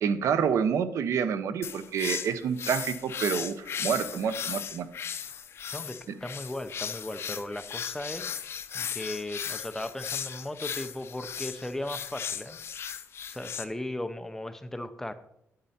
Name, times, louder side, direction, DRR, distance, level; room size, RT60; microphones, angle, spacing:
voice 1, 0.0-4.9 6.1-6.2, right 7 dB, 75° right, 12 dB, 0.8 m, -28 dB
Mysterious birds, 1.6-13.6, left 8 dB, 55° left, 0.7 m, -36 dB
voice 2, 5.7-8.3 8.7-12.6 13.3-15.1, left 1 dB, 10° left, 9 dB, 0.6 m, -37 dB
10.0 x 8.8 x 4.2 m, 0.77 s
cardioid pair, 140°, 5 cm